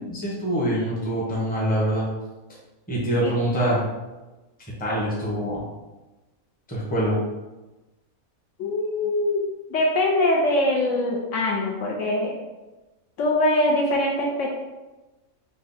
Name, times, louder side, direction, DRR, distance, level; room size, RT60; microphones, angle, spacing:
voice 1, 0.0-2.1 2.9-3.8 4.8-5.6 6.7-7.2, right 1 dB, 10° left, -5 dB, 0.7 m, -24 dB
voice 2, 8.6-9.4 9.7-12.3 13.2-14.5, left 1 dB, 70° left, -1 dB, 0.9 m, -22 dB
3.5 x 2.1 x 4.0 m, 1.1 s
omnidirectional pair, 1.5 m